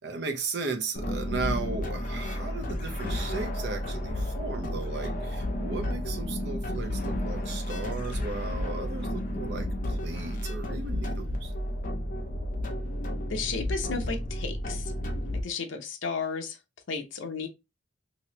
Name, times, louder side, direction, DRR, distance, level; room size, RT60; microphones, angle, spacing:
voice 1, 0.0-11.5, right 4 dB, 60° right, 0.7 m, -36 dB
sound 1, 1.0-15.4, left 1 dB, 45° left, 0.6 m, -32 dB
voice 2, 13.3-14.9 15.4-16.6 16.9-17.5, left 5 dB, 85° left, 0.7 m, -33 dB
3.0 x 2.7 x 2.9 m
head